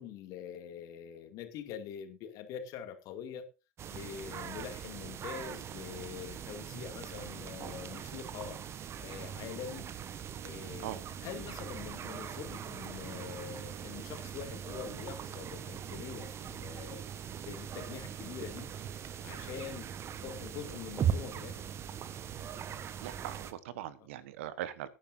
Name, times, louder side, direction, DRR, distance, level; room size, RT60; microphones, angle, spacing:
voice 1, 0.0-3.5 3.9-8.6 9.0-9.9 10.4-17.0 17.5-18.7 19.2-19.9 20.2-21.7, left 8 dB, 50° left, 6 dB, 2.4 m, -44 dB
sound 1, 3.8-23.5, right 8 dB, 35° right, 1.1 m, -40 dB
voice 2, 23.0-24.9, right 12 dB, 65° right, 16 dB, 1.2 m, -41 dB
16.5 x 10.0 x 2.7 m, 0.28 s
figure-of-eight pair, 75°, 8 cm